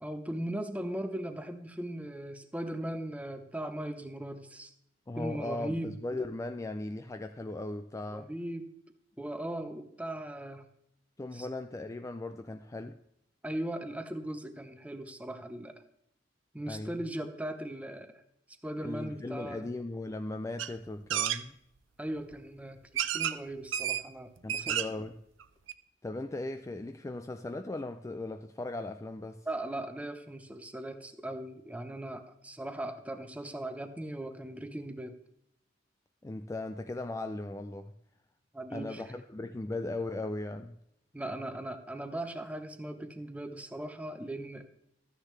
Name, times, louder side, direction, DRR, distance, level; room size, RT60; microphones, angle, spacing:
voice 1, 0.0-4.7 5.2-6.0 8.1-8.7 9.2-10.7 11.3-11.5 13.4-15.8 16.5-18.2 18.6-19.7 22.0-22.8 23.1-24.8 29.5-35.1 38.5-39.1 41.1-44.7, right 1 dB, 5° right, 0.8 m, -38 dB
voice 2, 5.1-8.3 11.2-13.0 16.7-17.0 18.8-21.6 24.4-25.2 26.0-29.5 36.2-37.9 38.7-40.8, left 2 dB, 15° left, 0.3 m, -38 dB
sound 1, 20.6-20.7 21.1-21.4 22.3-22.4 23.0-23.4 23.7-24.0 24.4-25.0 25.4-25.5 25.7-25.8, right 10 dB, 80° right, 0.5 m, -31 dB
13.0 x 9.8 x 3.2 m
head